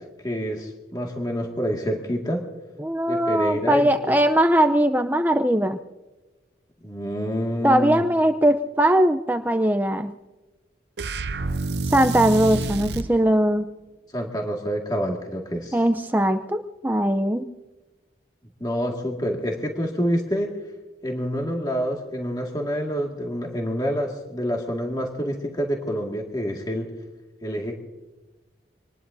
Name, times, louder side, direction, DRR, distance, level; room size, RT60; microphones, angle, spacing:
voice 1, 0.0-2.5 3.1-4.2 6.8-8.0 14.1-15.8 18.6-20.6 21.0-26.9 27.4-27.8, equal, 20° left, 0 dB, 2.0 m, -27 dB
voice 2, 2.8-5.8 7.6-10.1 11.9-13.7 15.7-17.5, right 1 dB, 10° right, 8 dB, 0.6 m, -20 dB
sound 1, 11.0-13.1, right 3 dB, 70° right, 0.7 m, -28 dB
26.0 x 20.0 x 2.7 m, 1.1 s
head